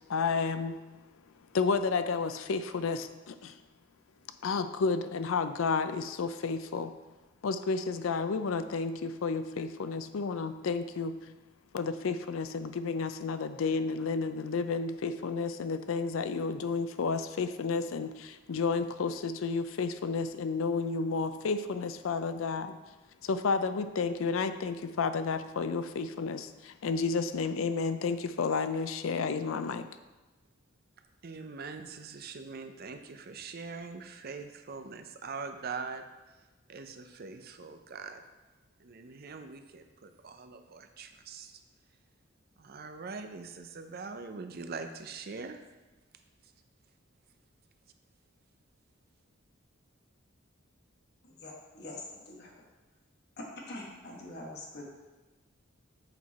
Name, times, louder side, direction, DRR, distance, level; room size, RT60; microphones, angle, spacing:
voice 1, 0.1-0.8 1.5-3.6 4.4-6.9 7.4-11.2 11.7-22.7 23.2-29.9, left 4 dB, 80° left, 10 dB, 0.4 m, -31 dB
voice 2, 31.2-36.0 36.7-38.2 38.8-41.6 42.6-45.6, right 4 dB, 50° right, 7 dB, 0.6 m, -42 dB
voice 3, 51.2-52.7 53.4-54.9, left 1 dB, 55° left, -1 dB, 1.4 m, -44 dB
7.9 x 4.6 x 4.2 m, 1.2 s
head